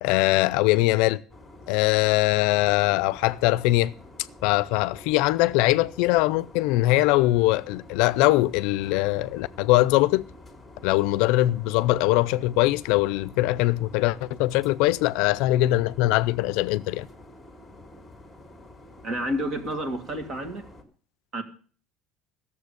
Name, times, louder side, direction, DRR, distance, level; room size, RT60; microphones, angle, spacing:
voice 1, 0.0-1.2 1.7-3.9 4.4-10.3 10.8-17.1, left 18 dB, 75° left, 0.5 m, -22 dB
sound 1, 1.3-20.8, left 1 dB, 5° left, 2.2 m, -48 dB
voice 2, 19.0-20.7 21.3-21.4, equal, 30° right, 2.1 m, -30 dB
15.0 x 7.1 x 8.2 m
cardioid pair, 165°, 0 cm